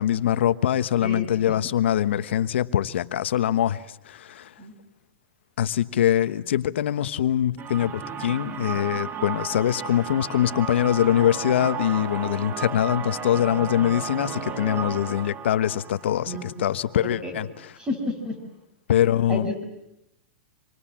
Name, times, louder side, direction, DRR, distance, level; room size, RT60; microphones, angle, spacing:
voice 1, 0.0-4.5 5.6-17.7 18.9-19.5, left 11 dB, 75° left, 1.2 m, -23 dB
voice 2, 1.0-1.5 4.6-4.7 16.3-16.5 17.0-17.4 17.8-18.3 19.3-19.6, left 1 dB, 15° right, 6.7 m, -31 dB
sound 1, 7.6-17.3, right 7 dB, 30° right, 2.0 m, -34 dB
27.0 x 25.0 x 7.5 m
hypercardioid pair, 145°, 6 cm